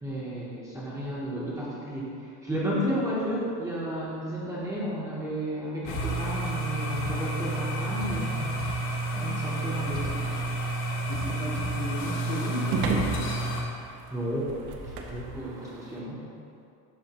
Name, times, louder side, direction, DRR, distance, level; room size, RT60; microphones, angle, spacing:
voice 1, 0.0-10.3 13.8-14.6 15.1-16.2, equal, 10° right, -8 dB, 0.7 m, -33 dB
sound 1, 5.9-13.6, right 1 dB, 85° left, 1.4 m, -30 dB
sound 2, 9.7-16.0, right 4 dB, 70° right, 0.8 m, -36 dB
voice 2, 11.1-13.3, equal, 40° left, -2 dB, 0.9 m, -35 dB
11.5 x 4.0 x 2.9 m, 2.5 s
cardioid pair, 180°, 40 cm